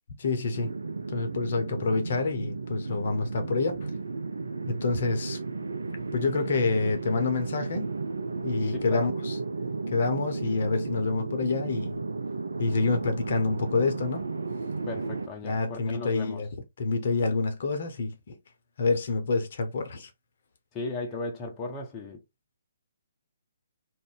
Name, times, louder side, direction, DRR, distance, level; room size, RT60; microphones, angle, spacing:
voice 1, 0.2-0.7 1.1-3.9 4.7-5.4 6.1-7.9 8.4-9.4 9.9-12.0 12.6-14.2 15.4-16.5 16.8-18.4 18.8-20.1, left 3 dB, 55° left, 0.7 m, -27 dB
sound 1, 0.5-15.3, right 3 dB, 75° right, 0.3 m, -34 dB
voice 2, 8.7-9.1 14.9-16.4 20.7-22.2, left 2 dB, 20° left, 0.6 m, -36 dB
2.5 x 2.1 x 3.7 m
figure-of-eight pair, 135°, 0 cm